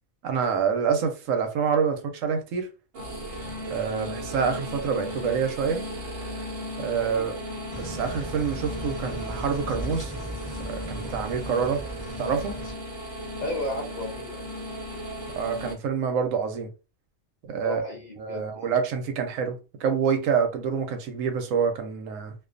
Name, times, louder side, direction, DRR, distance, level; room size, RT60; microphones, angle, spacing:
voice 1, 0.2-2.7 3.7-5.8 6.8-7.4 7.8-10.1 10.6-11.8 12.2-12.6 15.3-16.7 17.4-17.8 18.2-22.3, right 6 dB, 85° right, 1.0 m, -27 dB
sound 1, 2.9-15.7, equal, 55° right, 0.9 m, -36 dB
voice 2, 6.8-7.2 13.4-14.4 17.6-18.7, left 1 dB, 55° left, 0.5 m, -34 dB
sound 2, 7.7-12.7, right 1 dB, 20° left, 0.8 m, -37 dB
2.4 x 2.3 x 2.4 m
omnidirectional pair, 1.3 m